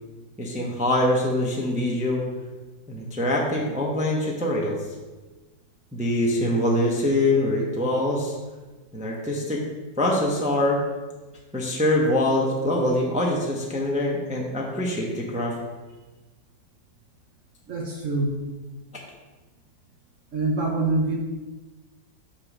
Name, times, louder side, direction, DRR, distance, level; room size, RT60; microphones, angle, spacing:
voice 1, 0.4-2.2 2.9-4.8 5.9-8.4 8.9-9.6 10.0-10.8 11.5-15.5, left 1 dB, 5° right, -2 dB, 0.6 m, -24 dB
voice 2, 17.7-18.4 20.3-21.2, right 2 dB, 55° right, 0 dB, 1.0 m, -25 dB
6.4 x 4.1 x 6.2 m, 1.2 s
omnidirectional pair, 2.0 m